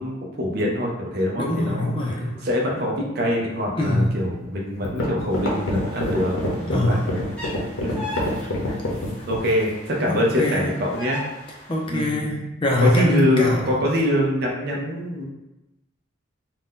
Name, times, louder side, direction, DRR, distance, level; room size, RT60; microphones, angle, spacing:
voice 1, 0.0-1.9 2.4-7.0 7.8-8.2 9.3-11.2 11.9-12.2 12.8-15.2, left 1 dB, 50° right, -2 dB, 0.5 m, -24 dB
voice 2, 1.4-2.5 3.8-4.1 6.7-7.1 10.1-10.7 11.7-13.7, left 1 dB, 25° left, -1 dB, 0.4 m, -23 dB
sound 1, 4.4-4.5 4.8-9.5, left 1 dB, 80° left, 0.7 m, -26 dB
sound 2, 5.3-11.9, left 1 dB, 5° left, 0.9 m, -39 dB
2.6 x 2.1 x 3.6 m, 0.96 s
head